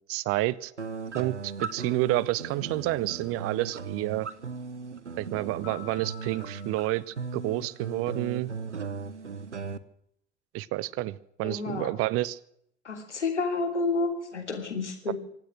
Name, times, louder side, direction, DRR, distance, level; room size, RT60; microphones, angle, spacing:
voice 1, 0.1-0.7 1.1-4.3 5.2-8.5 10.5-12.4 15.1-15.2, right 17 dB, 40° right, 22 dB, 0.7 m, -29 dB
sound 1, 0.8-9.8, right 5 dB, 90° right, 0.8 m, -37 dB
sound 2, 5.6-8.2, left 15 dB, 40° left, 2.5 m, -50 dB
voice 2, 11.4-11.9 12.8-15.1, left 3 dB, 85° left, 3 dB, 3.1 m, -30 dB
25.0 x 9.0 x 6.1 m, 0.71 s
figure-of-eight pair, 70°, 34 cm